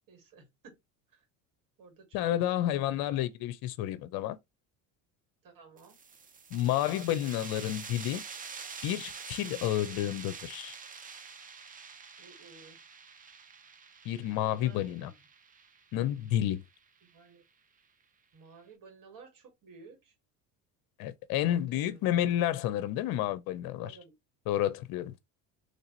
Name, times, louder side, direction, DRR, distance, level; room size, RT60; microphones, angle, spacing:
voice 1, 0.1-0.8 1.1-1.2 1.8-2.5 5.4-6.0 12.2-12.8 14.6-15.1 17.0-17.4 18.3-20.1 21.7-22.4 23.8-24.1, right 5 dB, 55° right, 2.2 m, -54 dB
voice 2, 2.1-4.4 6.5-8.2 8.8-10.8 14.0-15.1 15.9-16.6 21.0-24.0 24.5-25.1, left 12 dB, 60° left, 0.7 m, -30 dB
sound 1, 5.8-17.1, right 5 dB, 20° right, 0.5 m, -46 dB
3.2 x 2.7 x 4.0 m
supercardioid pair, 100°, 40 cm